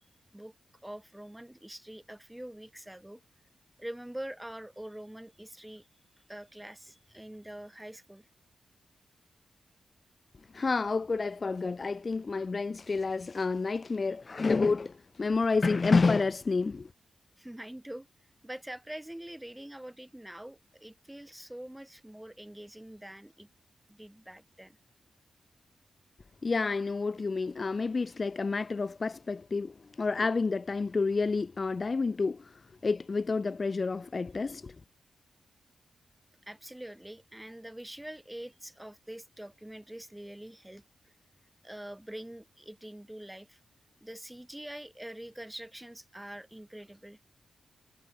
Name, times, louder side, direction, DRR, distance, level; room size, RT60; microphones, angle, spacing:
voice 1, 0.8-3.2 3.8-5.9 6.3-8.3 17.4-18.1 18.4-23.5 23.9-24.8 36.5-40.8 41.6-43.6 44.0-47.2, right 1 dB, 5° right, 3.3 m, -44 dB
voice 2, 10.5-16.9 26.4-34.8, left 4 dB, 35° left, 0.3 m, -29 dB
wide cardioid pair, 115°, 0 cm